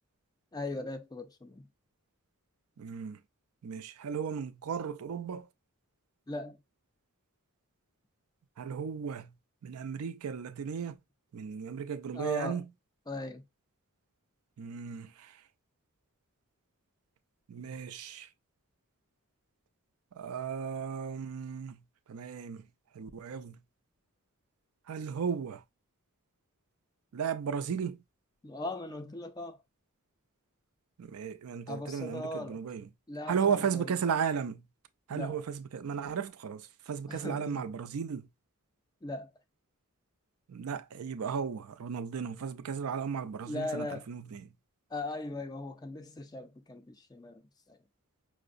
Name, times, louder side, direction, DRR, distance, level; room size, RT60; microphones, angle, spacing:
voice 1, 0.5-1.7 6.3-6.6 12.1-12.6 13.1-13.4 28.4-29.6 31.7-32.6 33.1-33.9 35.1-35.4 37.1-37.7 39.0-39.3 43.5-44.1 44.9-47.8, left 2 dB, 15° left, 0.4 m, -39 dB
voice 2, 2.8-3.2 3.6-5.5 8.6-9.3 9.6-11.0 11.3-12.7 14.6-15.4 17.5-18.3 20.1-21.8 22.1-22.7 22.9-23.6 24.9-25.6 27.1-28.0 31.0-32.9 33.3-34.6 35.1-38.3 40.5-44.5, right 7 dB, 75° right, 0.4 m, -35 dB
5.5 x 2.0 x 2.5 m
head